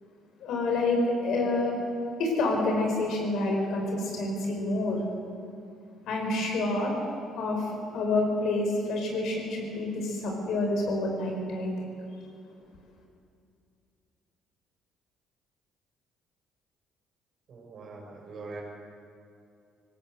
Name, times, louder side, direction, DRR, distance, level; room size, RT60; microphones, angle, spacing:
voice 1, 0.4-1.8 2.2-5.0 6.1-6.9 7.4-11.7, left 2 dB, 65° left, 1 dB, 5.1 m, -28 dB
voice 2, 17.5-18.6, right 3 dB, 55° right, 0 dB, 6.4 m, -42 dB
20.0 x 16.5 x 8.0 m, 2.5 s
hypercardioid pair, 60°, 0 cm